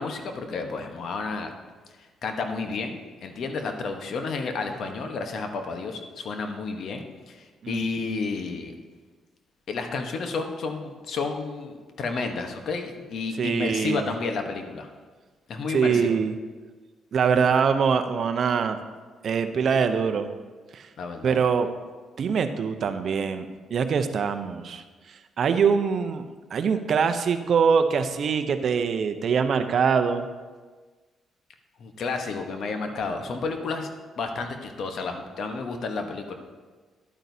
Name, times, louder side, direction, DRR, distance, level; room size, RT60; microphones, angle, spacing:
voice 1, 0.0-1.5 2.2-8.7 9.7-14.9 15.5-16.2 21.0-21.4 31.8-33.9 34.2-36.3, left 4 dB, 65° left, 5 dB, 1.0 m, -31 dB
voice 2, 13.4-14.1 15.7-16.3 17.1-18.8 19.2-20.3 20.7-20.9 21.2-21.7 22.2-23.5 23.7-24.8 25.4-26.2 26.5-30.3, right 6 dB, 55° right, 8 dB, 0.6 m, -23 dB
11.0 x 9.1 x 2.7 m, 1.4 s
cardioid pair, 90°, 0 cm